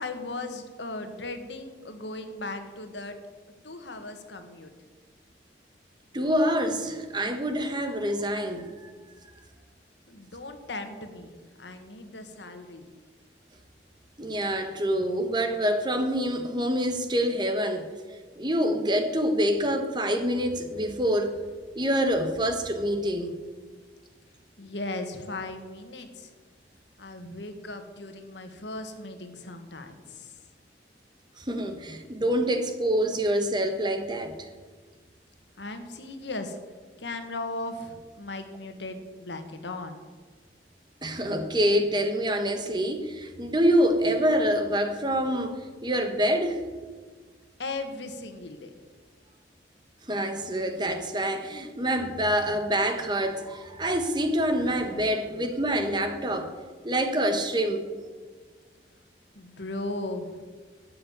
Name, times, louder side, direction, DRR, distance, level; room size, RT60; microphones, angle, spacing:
voice 1, 0.0-3.2 3.6-4.7 10.1-12.9 24.6-26.3 27.0-30.3 35.6-36.6 37.0-40.0 47.6-48.7 59.3-60.5, left 2 dB, 85° left, 1.7 m, -37 dB
voice 2, 6.1-8.9 14.2-17.9 18.4-21.3 21.7-23.3 31.4-34.4 41.0-46.6 50.1-56.5 56.8-57.9, equal, 25° right, 1.3 m, -26 dB
13.0 x 6.8 x 9.4 m
head